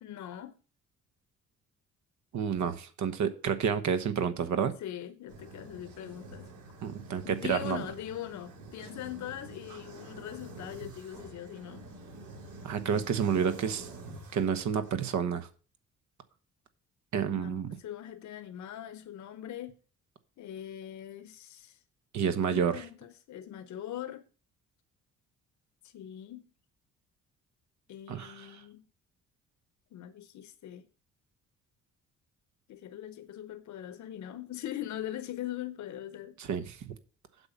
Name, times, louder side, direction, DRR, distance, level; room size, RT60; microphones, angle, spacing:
voice 1, 0.0-0.6 4.8-6.5 7.2-11.9 17.4-19.8 20.4-21.8 22.3-24.3 25.8-26.5 27.9-28.9 29.9-30.9 32.7-36.4, left 11 dB, 70° left, 0.9 m, -41 dB
voice 2, 2.3-4.7 6.8-7.8 12.6-13.9 14.3-15.5 17.1-17.8 22.1-22.8 28.1-28.6 36.4-36.9, right 7 dB, 70° right, 1.3 m, -30 dB
sound 1, 5.3-14.9, right 2 dB, 85° right, 4.0 m, -47 dB
8.0 x 5.4 x 7.3 m
cardioid pair, 90°, 30 cm